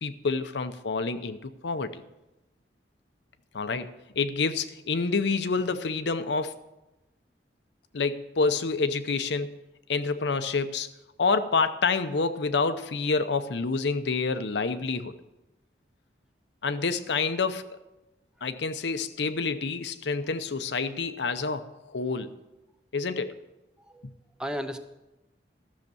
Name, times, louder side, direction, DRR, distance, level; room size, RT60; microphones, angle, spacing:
voice 1, 0.0-2.0 3.5-6.5 7.9-9.6 9.9-10.9 11.2-15.1 16.6-17.7 18.4-22.3 22.9-23.3 24.0-24.1, left 4 dB, 75° left, 10 dB, 0.7 m, -28 dB
voice 2, 24.4-24.8, equal, 5° right, 7 dB, 0.6 m, -35 dB
13.5 x 6.6 x 6.9 m, 1.0 s
head